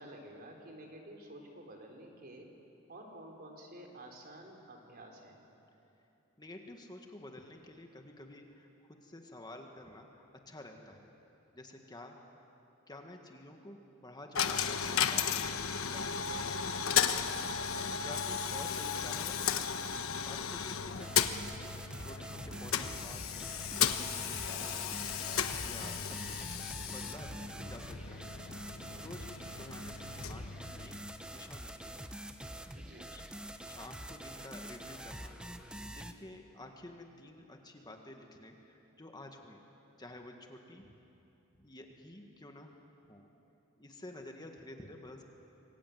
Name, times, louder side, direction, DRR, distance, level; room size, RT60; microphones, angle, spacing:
voice 1, 0.0-2.5 2.9-5.4 22.5-22.7 32.7-33.1, right 1 dB, 45° right, 2 dB, 3.9 m, -51 dB
voice 2, 6.4-8.7 9.0-11.1 11.5-12.5 12.9-15.4 15.8-16.1 18.0-19.5 19.9-21.1 22.0-23.4 23.7-27.3 27.6-28.4 29.0-32.1 32.4-32.5 33.1-33.2 33.7-39.6 40.0-40.9 41.6-42.8 43.1-43.3 43.8-45.2, left 1 dB, 20° left, 3 dB, 1.8 m, -51 dB
Coin (dropping), 14.3-31.3, left 7 dB, 75° left, 1.2 m, -35 dB
sound 1, 21.0-36.1, right 1 dB, 5° right, 1.0 m, -46 dB
26.5 x 22.0 x 9.4 m, 3.0 s
head